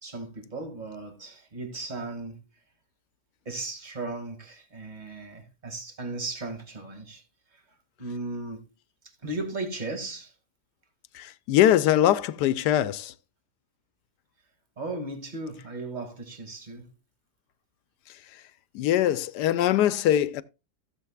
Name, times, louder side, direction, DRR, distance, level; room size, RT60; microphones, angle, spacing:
voice 1, 0.0-2.4 3.5-7.2 7.5-7.6 8.0-8.7 9.0-10.3 14.8-16.9, right 2 dB, 25° right, 2.0 m, -36 dB
voice 2, 11.1-13.1 18.7-20.4, left 12 dB, 80° left, 1.2 m, -22 dB
16.0 x 7.1 x 2.3 m
omnidirectional pair, 1.8 m